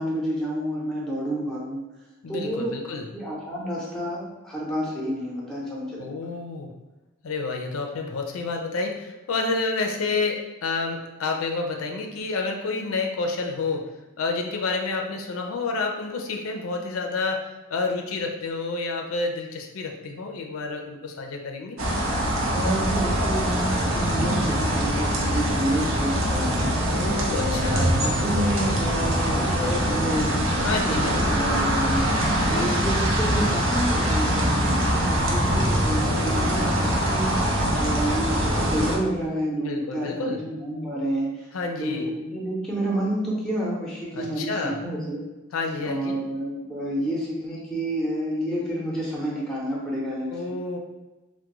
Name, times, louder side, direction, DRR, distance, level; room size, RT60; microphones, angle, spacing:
voice 1, 0.0-1.8 2.3-2.8 3.1-6.1 22.5-26.8 27.3-32.1 32.5-41.5 41.8-45.2 45.8-50.6, right 1 dB, 5° left, -5 dB, 0.6 m, -29 dB
voice 2, 2.2-3.1 6.0-6.7 7.2-21.8 26.9-27.9 30.6-31.3 32.3-32.7 36.0-36.7 39.6-40.4 41.5-42.1 44.1-44.8 45.5-46.2 50.3-50.8, left 3 dB, 85° left, 3 dB, 0.4 m, -29 dB
sound 1, 21.8-39.0, equal, 80° right, 0.6 m, -23 dB
3.4 x 2.1 x 2.9 m, 1.1 s
head